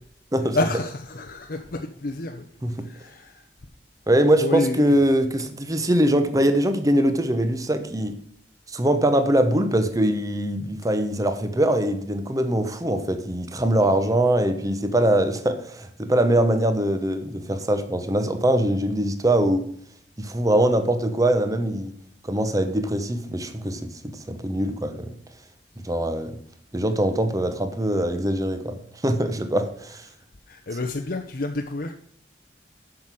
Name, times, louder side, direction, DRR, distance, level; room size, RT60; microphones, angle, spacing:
voice 1, 0.5-2.5 2.8-3.4 4.4-5.0 30.5-31.9, left 2 dB, 55° left, 0.8 m, -29 dB
voice 2, 4.1-8.2 8.7-19.7 20.2-21.9 22.2-25.1 25.8-26.4 26.7-30.0, right 1 dB, 20° right, 1.0 m, -22 dB
7.7 x 6.0 x 7.5 m
head